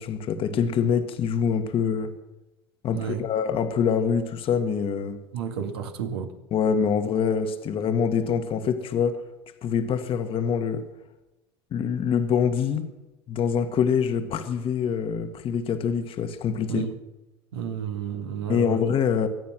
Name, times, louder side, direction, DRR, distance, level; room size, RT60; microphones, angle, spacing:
voice 1, 0.0-2.1 2.8-5.2 6.5-9.2 9.6-10.9 11.7-12.9 13.3-16.8 18.5-19.3, left 7 dB, 45° left, 1.6 m, -25 dB
voice 2, 2.9-3.2 5.3-6.3 16.7-17.0 17.5-18.8, right 8 dB, 80° right, 1.9 m, -31 dB
23.5 x 9.3 x 6.2 m
hypercardioid pair, 75°, 13 cm